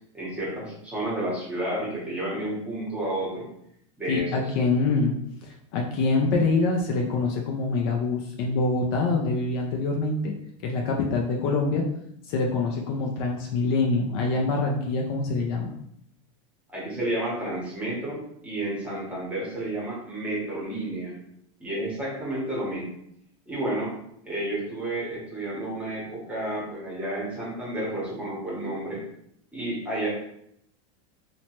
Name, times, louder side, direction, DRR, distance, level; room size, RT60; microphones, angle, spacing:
voice 1, 0.1-3.5 4.0-4.3 16.7-21.2 21.6-22.9 23.5-23.9 24.3-29.0 29.5-30.1, right 1 dB, 10° right, -6 dB, 0.8 m, -31 dB
voice 2, 4.1-10.3 10.6-11.8 12.2-15.7, left 3 dB, 45° left, 1 dB, 0.4 m, -25 dB
2.9 x 2.1 x 2.9 m, 0.73 s
supercardioid pair, 165°, 17 cm